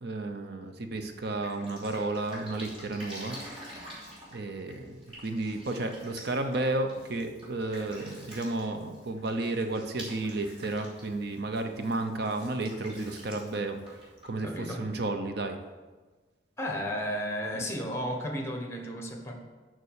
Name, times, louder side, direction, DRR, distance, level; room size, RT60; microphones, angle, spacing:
voice 1, 0.0-3.4 4.3-15.6, right 2 dB, 60° right, 6 dB, 0.7 m, -32 dB
Drip, 1.0-15.1, equal, 30° right, 3.0 m, -48 dB
voice 2, 14.4-14.8 16.6-19.3, equal, 15° left, 2 dB, 1.3 m, -33 dB
6.9 x 6.1 x 6.5 m, 1.3 s
head